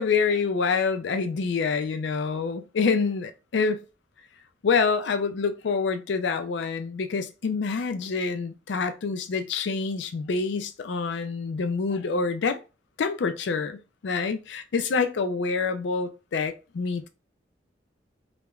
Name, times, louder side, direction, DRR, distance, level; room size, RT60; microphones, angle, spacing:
voice 1, 0.0-3.8 4.6-12.6 13.0-17.1, left 5 dB, 85° left, 0.4 m, -27 dB
3.0 x 2.1 x 2.3 m
head